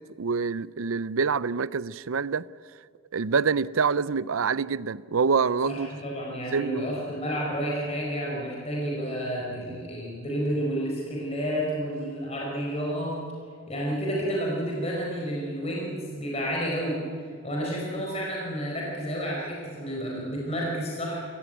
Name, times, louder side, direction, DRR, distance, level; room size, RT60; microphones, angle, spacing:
voice 1, 0.0-2.5 3.1-5.9 6.5-6.9, right 5 dB, 75° right, 0.5 m, -26 dB
voice 2, 5.7-13.2 13.7-17.0 17.4-21.2, equal, 30° left, 4.9 m, -30 dB
27.0 x 16.0 x 9.3 m
head